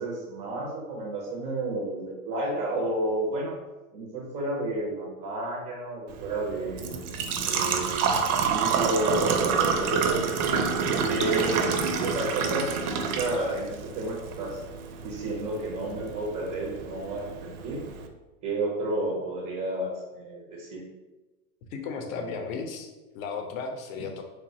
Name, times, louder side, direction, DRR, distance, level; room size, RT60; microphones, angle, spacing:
voice 1, 0.0-3.6 3.9-6.9 7.5-11.6 12.0-14.6 15.0-17.8 18.4-20.8 22.3-22.4, right 2 dB, 15° right, -3 dB, 0.3 m, -31 dB
Engine / Trickle dribble / Fill (with liquid), 6.1-18.1, right 5 dB, 85° right, 0.5 m, -28 dB
voice 2, 21.7-24.2, left 5 dB, 70° left, 4 dB, 0.6 m, -35 dB
3.1 x 2.1 x 2.6 m, 1.1 s
supercardioid pair, 140°, 43 cm